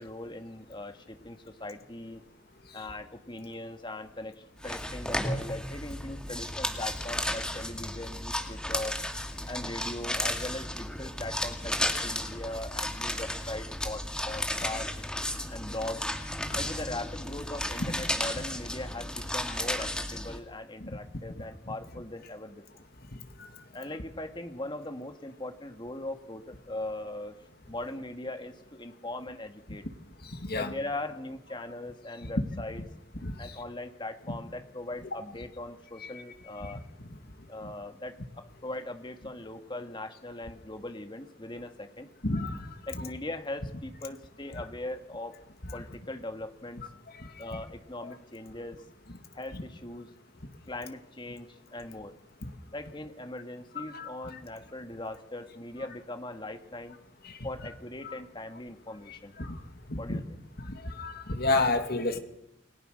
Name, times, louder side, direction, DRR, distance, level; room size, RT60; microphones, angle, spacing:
voice 1, 0.0-2.2 2.7-9.0 9.5-14.9 15.5-16.1 16.6-22.9 23.7-27.4 27.6-29.8 30.5-32.8 33.4-36.8 37.5-42.1 42.8-45.4 45.7-46.8 47.4-48.8 49.3-50.1 50.7-52.2 52.7-57.0 57.4-59.4 60.0-60.2, left 1 dB, 25° left, 6 dB, 2.0 m, -40 dB
sound 1, 4.6-20.4, left 1 dB, 5° left, 2.3 m, -34 dB
voice 2, 30.3-30.7 33.2-33.3 34.3-34.4 36.6-36.7 42.2-42.7 47.5-47.6 53.8-54.3 57.2-57.3 58.0-58.1 59.4-59.6 59.9-60.2 60.7-62.2, left 2 dB, 50° left, 6 dB, 2.5 m, -30 dB
29.0 x 22.0 x 6.6 m, 0.84 s
head